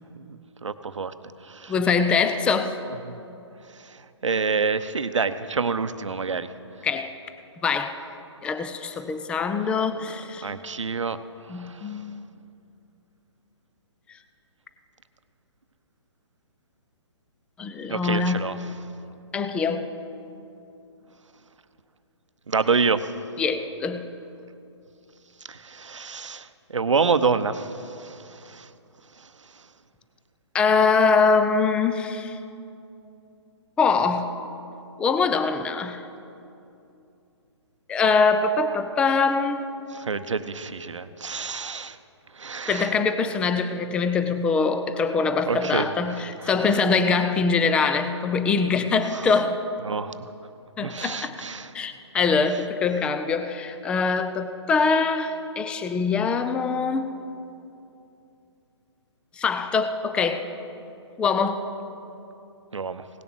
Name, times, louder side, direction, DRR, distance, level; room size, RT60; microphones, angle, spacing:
voice 1, 0.2-1.1 1.4-1.7 3.0-3.2 3.7-6.5 9.6-9.7 10.4-11.2 11.5-11.9 17.9-18.7 22.5-23.1 25.4-28.7 29.2-29.3 29.6-29.7 39.9-42.0 42.3-42.9 45.3-46.8 49.1-49.4 49.8-50.3 50.8-51.7 62.7-63.1, right 5 dB, 90° right, 12 dB, 0.7 m, -28 dB
voice 2, 1.7-2.8 6.8-7.1 7.6-8.0 8.4-10.5 11.5-12.3 17.6-18.4 19.3-19.8 23.4-24.0 30.5-32.4 33.8-34.3 35.0-36.0 37.9-39.6 42.7-49.6 50.8-51.4 51.7-57.1 59.4-60.5 61.2-61.7, left 4 dB, 5° left, 10 dB, 0.3 m, -23 dB
17.5 x 7.0 x 6.2 m, 2.7 s
hypercardioid pair, 140°, 15 cm